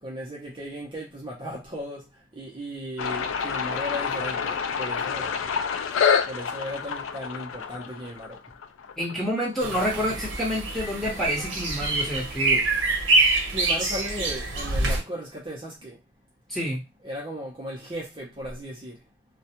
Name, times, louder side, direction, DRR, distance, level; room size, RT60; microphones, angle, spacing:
voice 1, 0.0-5.4 6.3-8.4 13.5-16.0 17.0-19.0, equal, 25° right, 0.6 m, -36 dB
sound 1, 3.0-9.5, left 6 dB, 90° left, 0.3 m, -28 dB
voice 2, 9.0-12.7 16.5-16.8, equal, ahead, 1.0 m, -28 dB
sound 2, 9.6-15.0, right 2 dB, 70° right, 0.8 m, -25 dB
2.3 x 2.2 x 2.8 m
head